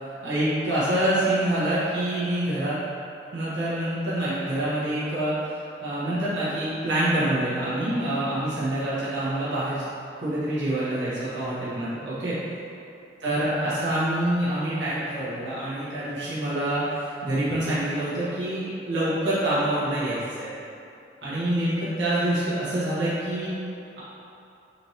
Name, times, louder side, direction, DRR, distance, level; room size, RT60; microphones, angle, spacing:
voice 1, 0.1-2.8 3.3-5.3 5.8-9.8 10.2-12.3 13.2-20.5 21.2-23.5, right 1 dB, 85° right, -11 dB, 1.2 m, -26 dB
4.3 x 3.2 x 2.8 m, 2.7 s
head